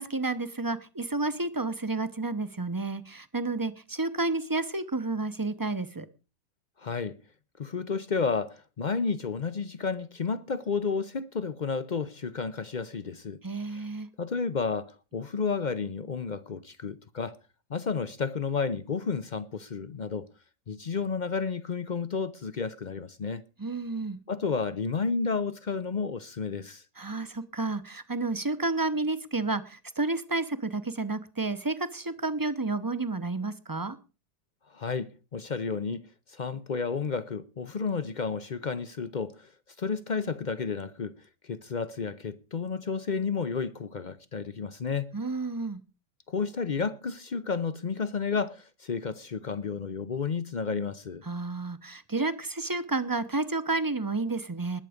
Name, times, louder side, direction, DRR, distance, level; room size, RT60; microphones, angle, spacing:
voice 1, 0.0-6.1 13.4-14.1 23.6-24.2 27.0-34.0 45.1-45.8 51.2-54.8, right 3 dB, 20° right, 0.5 m, -31 dB
voice 2, 6.8-7.2 7.6-13.4 14.2-17.4 17.7-20.3 20.7-23.4 24.3-26.8 34.7-39.5 39.8-41.1 41.4-45.1 46.3-51.2, left 5 dB, 60° left, 0.4 m, -31 dB
20.5 x 8.1 x 5.0 m
omnidirectional pair, 1.8 m